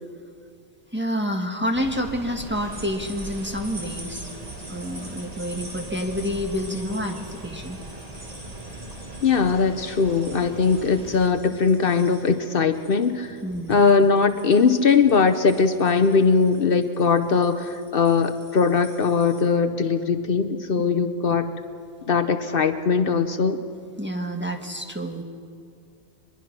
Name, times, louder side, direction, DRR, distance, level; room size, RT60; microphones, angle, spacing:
voice 1, 0.9-4.3 4.7-7.8 13.4-13.8 24.0-25.2, equal, 10° right, 3 dB, 1.5 m, -28 dB
sound 1, 1.7-11.3, right 1 dB, 35° right, 2.0 m, -39 dB
sound 2, 2.7-19.4, right 1 dB, 55° right, 4.2 m, -46 dB
voice 2, 9.2-13.4 13.7-21.5 22.1-23.6, left 5 dB, 60° left, 7 dB, 1.0 m, -20 dB
24.0 x 22.0 x 6.0 m, 2.3 s
omnidirectional pair, 1.1 m